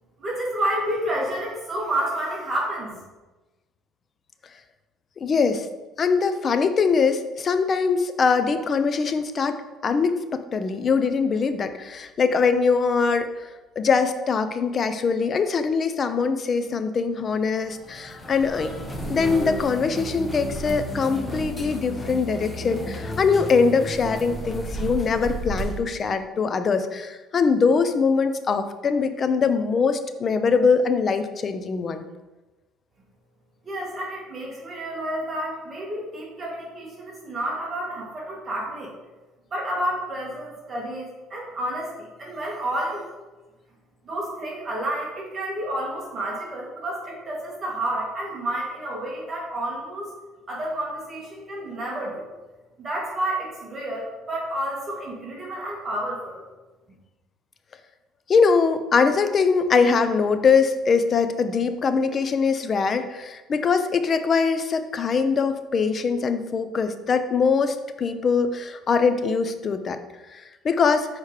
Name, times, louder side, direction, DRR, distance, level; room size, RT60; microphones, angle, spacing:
voice 1, 0.2-3.0 33.6-38.9 39.5-43.0 44.0-50.1 50.5-52.3 52.8-56.4, right 1 dB, 30° right, -3 dB, 2.0 m, -30 dB
voice 2, 5.2-5.7 6.0-9.6 9.8-13.5 13.8-18.7 19.1-32.1 58.3-70.0 70.3-71.1, left 5 dB, 35° left, 9 dB, 0.6 m, -22 dB
sound 1, 17.6-25.8, equal, 15° left, 0.9 m, -33 dB
6.6 x 4.9 x 4.9 m, 1.1 s
cardioid pair, 125°, 0 cm